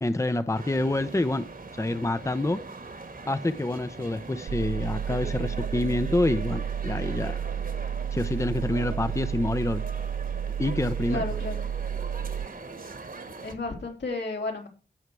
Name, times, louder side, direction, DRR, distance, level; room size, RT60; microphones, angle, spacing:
voice 1, 0.0-1.4 1.7-2.6 3.3-7.4 8.1-9.8 10.6-11.2, left 2 dB, 15° left, 0.7 m, -27 dB
sound 1, 0.5-13.6, right 3 dB, 50° right, 1.7 m, -41 dB
sound 2, 4.5-12.5, right 8 dB, 75° right, 0.4 m, -31 dB
voice 2, 11.1-11.6 13.4-14.7, left 3 dB, 80° left, 3.9 m, -32 dB
16.5 x 6.4 x 4.7 m
wide cardioid pair, 75°, 18 cm